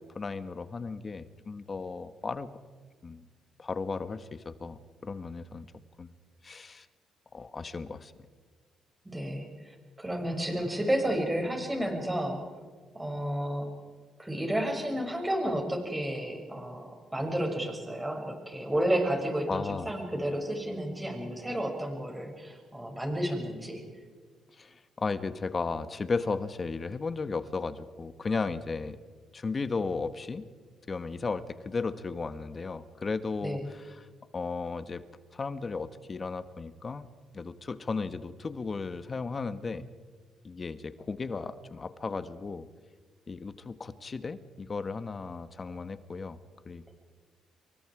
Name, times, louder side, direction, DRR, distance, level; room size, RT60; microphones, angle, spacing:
voice 1, 0.0-2.5 3.0-3.2 3.6-5.7 6.0-6.1 6.4-6.9 7.3-8.1 19.5-19.9 24.5-29.0 29.3-30.4 30.9-34.1 34.3-35.0 35.3-37.1 37.3-39.9 40.4-42.7 43.3-46.4 46.6-46.9, left 4 dB, 35° left, 12 dB, 1.3 m, -35 dB
voice 2, 9.1-12.4 13.0-13.7 14.2-23.8 33.4-33.6, right 1 dB, 10° right, 2 dB, 6.8 m, -31 dB
28.0 x 23.5 x 4.9 m, 1.5 s
cardioid pair, 90°, 0 cm